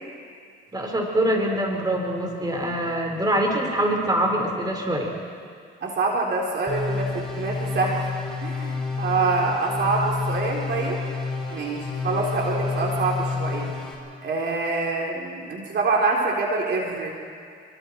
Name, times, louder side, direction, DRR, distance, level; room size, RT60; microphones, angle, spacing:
voice 1, 0.7-5.1, right 1 dB, 20° right, 1 dB, 4.9 m, -24 dB
voice 2, 5.8-8.1 8.4-11.0 11.5-13.8 14.2-17.1, right 3 dB, 60° right, -1 dB, 3.8 m, -25 dB
sound 1, 6.7-13.9, left 4 dB, ahead, 7.6 m, -29 dB
28.0 x 25.0 x 4.6 m, 2.2 s
cardioid pair, 90°, 20 cm